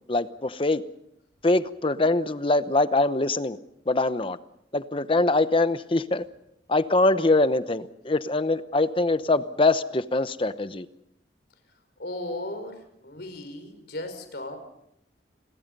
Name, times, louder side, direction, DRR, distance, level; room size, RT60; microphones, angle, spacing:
voice 1, 0.1-0.8 1.4-3.6 3.9-4.4 4.7-6.2 6.7-10.9, left 2 dB, 30° left, 12 dB, 0.9 m, -23 dB
voice 2, 12.0-12.8 13.0-14.6, left 1 dB, 60° left, 8 dB, 5.2 m, -35 dB
29.5 x 22.0 x 5.4 m, 0.78 s
head